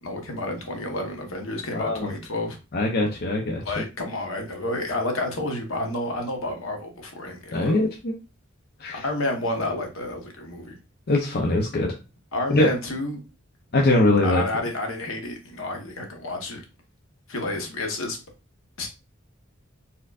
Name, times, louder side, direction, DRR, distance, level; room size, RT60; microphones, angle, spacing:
voice 1, 0.0-2.6 3.6-7.8 8.9-10.8 12.3-13.2 14.2-16.6 17.3-18.2 18.8-18.9, left 2 dB, 75° left, 3 dB, 1.1 m, -30 dB
voice 2, 1.7-2.1 2.7-3.6 7.5-8.1 8.8-9.0 11.1-11.9 12.5-12.7 13.7-14.4, left 2 dB, 50° left, 1 dB, 0.6 m, -22 dB
4.3 x 3.8 x 2.4 m, 0.30 s
head